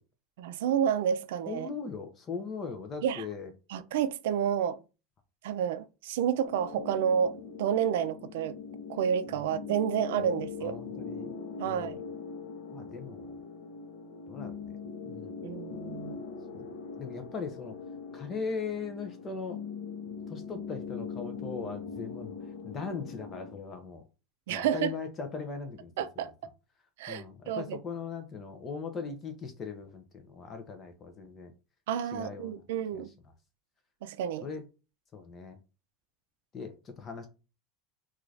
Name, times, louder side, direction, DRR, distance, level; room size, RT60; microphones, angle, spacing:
voice 1, 0.4-1.7 3.0-3.3 3.7-4.8 5.4-8.5 8.9-10.8 11.6-12.0 15.4-16.2 24.5-24.9 26.0-26.3 27.0-27.8 31.9-33.1 34.0-34.5, right 8 dB, 85° right, 0.4 m, -30 dB
voice 2, 1.5-3.5 10.2-10.3 10.6-11.3 11.6-12.0 12.7-13.4 14.3-14.8 15.0-15.5 16.5-17.8 18.1-19.6 20.3-22.4 22.6-24.0 24.5-26.2 27.1-31.5 32.1-32.6 32.9-33.0 34.4-34.6 35.1-35.6 36.5-37.3, left 5 dB, 25° left, 0.4 m, -39 dB
sound 1, 6.4-23.6, left 5 dB, 70° left, 0.6 m, -41 dB
2.5 x 2.3 x 3.2 m
supercardioid pair, 165°, 0 cm